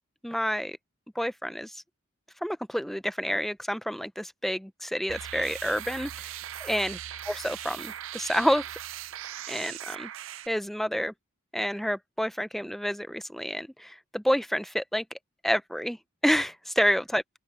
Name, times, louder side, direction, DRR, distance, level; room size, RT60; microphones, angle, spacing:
voice 1, 0.2-0.8 1.2-1.8 2.4-7.0 7.3-8.6 9.5-10.1 10.5-11.1 11.5-15.0 15.4-16.0 16.2-17.2, equal, ahead, 0.5 m, -29 dB
sound 1, 5.1-10.5, right 12 dB, 70° right, 0.5 m, -39 dB
open air
head